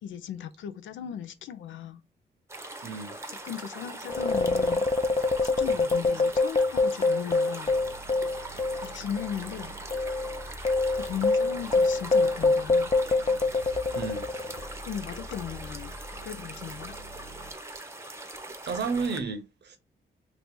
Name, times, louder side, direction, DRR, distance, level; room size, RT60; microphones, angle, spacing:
voice 1, 0.0-2.0 3.3-4.9 5.4-7.7 8.8-9.8 10.9-12.9 14.8-17.0, left 9 dB, 85° left, 0.5 m, -37 dB
sound 1, 2.5-19.2, right 2 dB, 15° right, 0.8 m, -41 dB
voice 2, 2.8-3.2 13.9-14.3 18.6-19.8, right 5 dB, 60° right, 0.9 m, -32 dB
sound 2, 4.1-8.9 9.2-9.3 9.9-14.7, left 3 dB, 30° left, 0.6 m, -25 dB
sound 3, 7.6-17.5, equal, 65° left, 1.0 m, -46 dB
2.9 x 2.6 x 3.5 m
cardioid pair, 65°, 19 cm